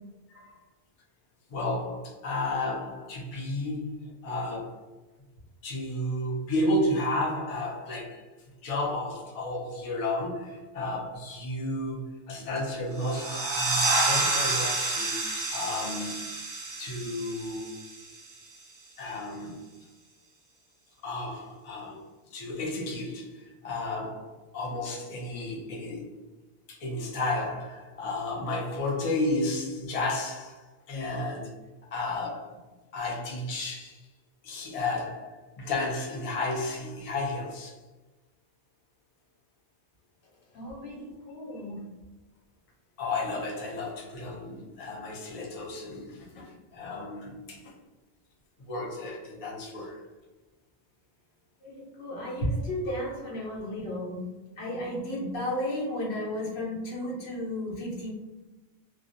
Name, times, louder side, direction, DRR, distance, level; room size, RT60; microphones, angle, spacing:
voice 1, 1.5-4.9 5.6-8.2 8.6-15.2 15.5-16.2 16.8-17.8 19.0-19.6 21.0-22.0 22.3-26.1 26.7-31.5 31.9-32.6 32.9-34.1 34.4-37.8 41.6-41.7 43.0-47.7 48.7-50.0, left 2 dB, 50° left, -2 dB, 0.4 m, -32 dB
sound 1, 13.0-18.3, right 3 dB, 50° right, 0.6 m, -29 dB
voice 2, 40.5-41.8 51.6-54.2 54.6-58.1, left 1 dB, 70° left, -4 dB, 1.0 m, -33 dB
2.4 x 2.0 x 2.6 m, 1.1 s
omnidirectional pair, 1.1 m